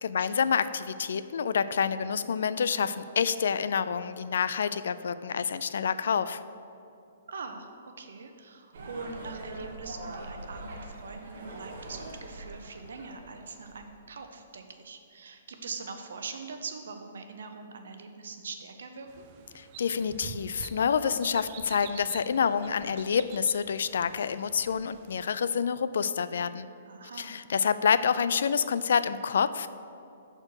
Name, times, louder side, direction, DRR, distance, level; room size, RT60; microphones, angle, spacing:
voice 1, 0.0-6.4 19.5-26.7 27.2-29.7, left 6 dB, 70° left, 14 dB, 0.3 m, -28 dB
voice 2, 7.3-19.3 26.9-27.3, right 4 dB, 75° right, 6 dB, 0.8 m, -42 dB
sound 1, 8.7-14.1, right 2 dB, 55° right, 1.1 m, -43 dB
sound 2, 19.1-25.3, right 7 dB, 30° right, 0.4 m, -47 dB
6.0 x 4.3 x 6.4 m, 2.6 s
hypercardioid pair, 170°, 0 cm